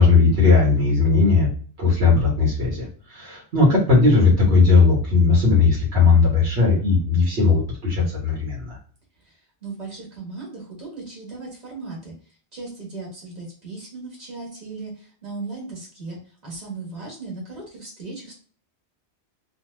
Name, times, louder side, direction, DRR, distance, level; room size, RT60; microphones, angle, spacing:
voice 1, 0.0-1.5 1.8-8.8, left 4 dB, 75° right, -4 dB, 1.4 m, -17 dB
voice 2, 9.2-18.3, right 3 dB, 35° right, -5 dB, 1.6 m, -37 dB
3.2 x 2.3 x 3.1 m, 0.43 s
omnidirectional pair, 1.1 m